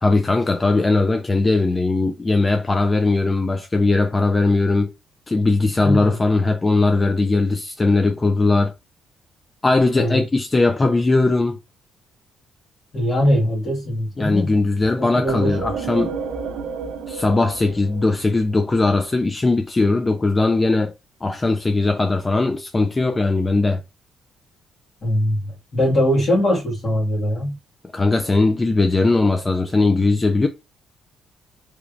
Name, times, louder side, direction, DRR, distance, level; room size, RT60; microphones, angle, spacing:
voice 1, 0.0-4.9 5.3-8.7 9.6-11.6 14.2-16.1 17.1-20.9 21.2-23.8 27.9-30.5, left 3 dB, 25° left, 0.3 m, -19 dB
voice 2, 5.8-6.2 10.0-10.2 12.9-14.5 15.0-15.6 25.0-27.6, equal, 50° left, 1.6 m, -21 dB
sound 1, 15.3-18.9, right 5 dB, 75° right, 0.4 m, -31 dB
3.2 x 3.0 x 2.4 m
cardioid pair, 90°, 0 cm